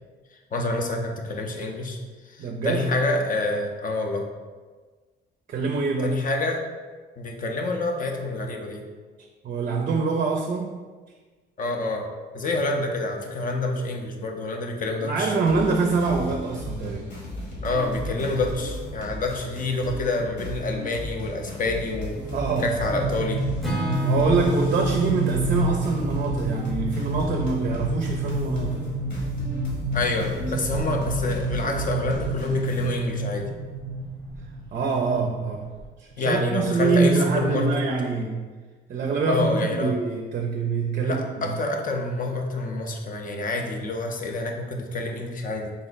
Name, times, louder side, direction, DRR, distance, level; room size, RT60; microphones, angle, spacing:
voice 1, 0.5-2.0 2.2-4.3 6.0-6.6 7.2-8.8 11.6-12.1 12.3-15.4 17.6-22.2 22.6-23.4 29.9-33.5 36.2-37.8 39.3-40.0 41.0-45.7, left 2 dB, 45° left, 2 dB, 0.5 m, -27 dB
voice 2, 2.4-2.9 5.5-6.2 9.4-10.8 15.0-17.1 22.3-22.7 24.0-28.9 30.4-30.6 34.7-35.7 36.0-38.5 38.9-41.5, right 4 dB, 45° right, 1 dB, 0.4 m, -25 dB
sound 1, 15.5-32.9, equal, 65° left, 1.3 m, -36 dB
sound 2, 16.8-17.0 17.9-18.0 18.4-18.5 18.8-19.1 19.5-35.9, right 1 dB, 90° left, 1.4 m, -29 dB
Acoustic guitar / Strum, 23.6-27.7, equal, ahead, 0.7 m, -35 dB
3.7 x 2.1 x 3.9 m, 1.4 s
cardioid pair, 90°, 20 cm